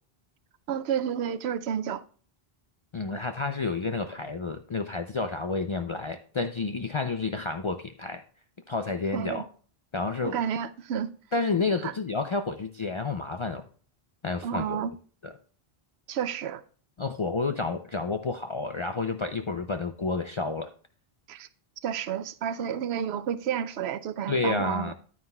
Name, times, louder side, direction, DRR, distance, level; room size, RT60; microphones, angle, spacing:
voice 1, 0.7-2.0 9.1-9.4 10.2-11.1 11.8-11.9 14.4-14.9 16.1-16.6 21.3-21.5 21.8-24.9, right 9 dB, 85° right, 0.9 m, -30 dB
voice 2, 2.9-8.2 8.7-9.5 9.9-10.4 11.3-13.7 14.2-14.8 15.2-15.3 17.0-20.7 24.3-24.9, left 3 dB, 50° left, 0.3 m, -30 dB
9.6 x 9.3 x 2.2 m
omnidirectional pair, 1.0 m